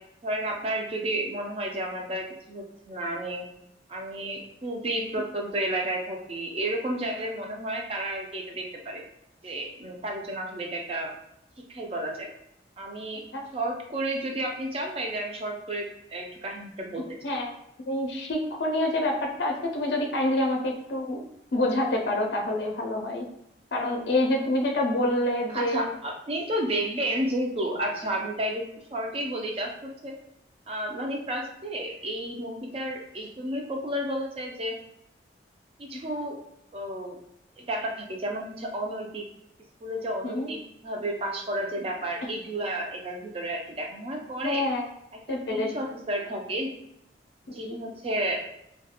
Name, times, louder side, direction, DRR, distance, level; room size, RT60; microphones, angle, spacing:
voice 1, 0.2-3.5 3.9-9.0 9.4-11.1 11.7-12.3 12.8-13.2 13.5-17.2 25.5-30.2 30.7-34.8 35.8-36.4 36.7-37.2 37.6-39.3 39.8-44.7 45.3-46.7 47.5-48.5, right 1 dB, 35° right, 1 dB, 0.4 m, -32 dB
voice 2, 17.8-21.2 21.5-23.3 23.7-25.9 40.2-40.5 44.4-44.9 45.3-45.7 47.5-47.6, left 1 dB, 70° left, 1 dB, 0.4 m, -27 dB
2.3 x 2.2 x 2.8 m, 0.79 s
head